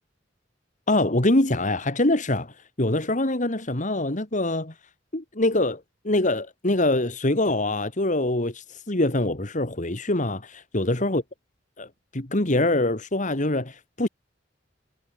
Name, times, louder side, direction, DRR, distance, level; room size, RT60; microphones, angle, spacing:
voice 1, 0.9-4.7 5.1-11.2 11.8-11.9 12.1-14.1, left 2 dB, 45° left, 2.4 m, -24 dB
head